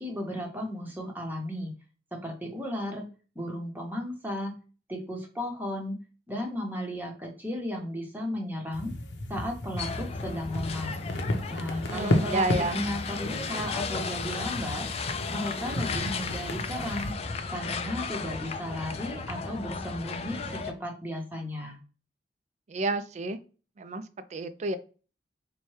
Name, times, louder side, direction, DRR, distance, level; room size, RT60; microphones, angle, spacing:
voice 1, 0.0-1.7 2.1-3.1 3.3-4.6 4.9-6.0 6.3-8.9 9.3-11.0 11.5-12.5 12.7-14.9 15.3-17.2 17.5-21.8, left 1 dB, 10° right, 0 dB, 0.9 m, -35 dB
sound 1, 8.7-17.1, left 1 dB, 80° left, 0.7 m, -33 dB
sound 2, 9.8-20.7, left 4 dB, 35° left, 0.4 m, -35 dB
voice 2, 11.9-12.8 22.7-23.4 23.8-24.0 24.3-24.8, right 2 dB, 40° right, 12 dB, 0.4 m, -30 dB
4.2 x 2.2 x 3.1 m, 0.35 s
head